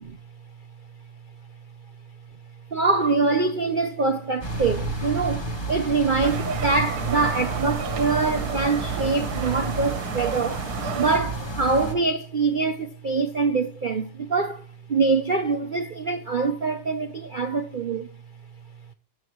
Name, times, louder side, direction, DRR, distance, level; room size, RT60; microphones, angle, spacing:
voice 1, 2.7-10.7 10.9-14.6 14.9-18.1, right 4 dB, 80° right, 0.4 m, -24 dB
sound 1, 4.4-11.9, right 2 dB, 15° left, 1.6 m, -30 dB
sound 2, 6.2-11.2, right 8 dB, 60° right, 1.4 m, -33 dB
19.5 x 7.5 x 3.0 m
omnidirectional pair, 2.1 m